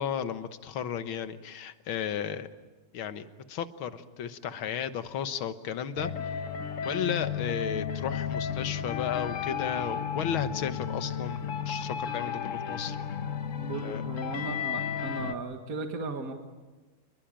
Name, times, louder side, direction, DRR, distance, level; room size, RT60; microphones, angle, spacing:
voice 1, 0.0-2.5 2.9-6.1 6.8-11.4 11.7-13.0 13.8-14.0, left 8 dB, 70° left, 11 dB, 1.9 m, -34 dB
sound 1, 6.0-15.3, left 7 dB, 45° left, 1.1 m, -33 dB
voice 2, 13.6-16.3, right 3 dB, 40° right, 5 dB, 2.1 m, -36 dB
28.0 x 22.0 x 8.8 m, 1.2 s
omnidirectional pair, 2.4 m